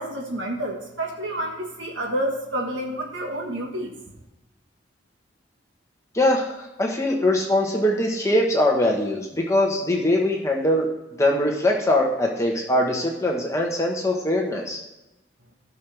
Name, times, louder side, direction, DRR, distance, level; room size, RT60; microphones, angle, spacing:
voice 1, 0.0-3.9, right 1 dB, 85° right, 0 dB, 1.6 m, -29 dB
voice 2, 6.1-10.9 11.2-14.8, left 1 dB, 15° left, -1 dB, 1.2 m, -22 dB
15.0 x 6.2 x 3.4 m, 0.96 s
head